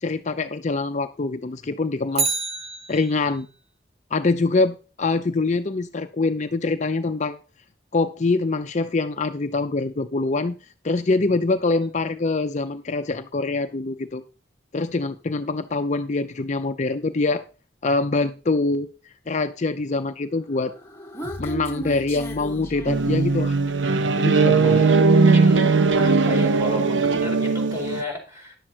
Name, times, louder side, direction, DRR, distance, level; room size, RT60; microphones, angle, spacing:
voice 1, 0.0-2.4 2.9-3.5 4.1-7.4 7.9-10.6 10.8-14.2 14.7-17.4 17.8-18.9 19.3-20.7 21.4-23.6 24.2-24.9, left 3 dB, 40° left, 0.6 m, -24 dB
Bicycle, 2.1-3.5 11.8-11.9, right 5 dB, 35° right, 0.9 m, -28 dB
Human voice, 20.6-23.6, right 1 dB, 15° left, 1.3 m, -35 dB
sound 1, 22.9-28.0, right 4 dB, 85° right, 0.7 m, -19 dB
voice 2, 24.6-25.7 26.0-28.6, left 2 dB, 15° right, 4.6 m, -33 dB
11.0 x 7.5 x 4.4 m
head